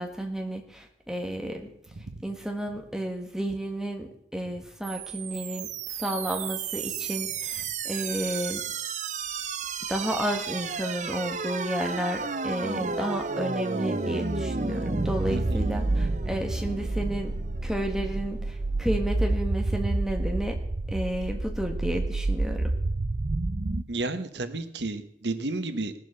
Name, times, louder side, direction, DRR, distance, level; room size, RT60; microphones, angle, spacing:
voice 1, 0.0-1.7 2.2-8.7 9.9-17.3 17.6-20.6 20.9-22.7, right 1 dB, 5° right, 2 dB, 1.6 m, -32 dB
sound 1, 4.8-23.8, right 3 dB, 40° right, 0.6 m, -30 dB
voice 2, 23.9-26.0, right 2 dB, 85° right, 10 dB, 1.2 m, -31 dB
18.5 x 7.5 x 6.7 m, 0.76 s
head